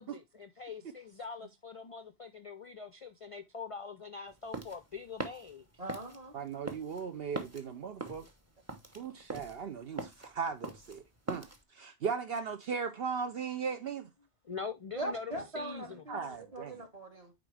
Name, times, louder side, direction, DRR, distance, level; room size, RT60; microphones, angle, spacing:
voice 1, 0.0-5.6 14.4-16.0, left 5 dB, 45° left, 0.4 m, -43 dB
sound 1, 4.3-11.6, right 2 dB, 15° right, 0.8 m, -42 dB
voice 2, 5.8-6.3 14.9-17.3, right 1 dB, 35° right, 1.6 m, -41 dB
voice 3, 6.3-8.3 8.9-11.5 11.7-14.1 16.1-16.8, right 6 dB, 60° right, 0.8 m, -37 dB
9.1 x 3.8 x 3.2 m
omnidirectional pair, 1.2 m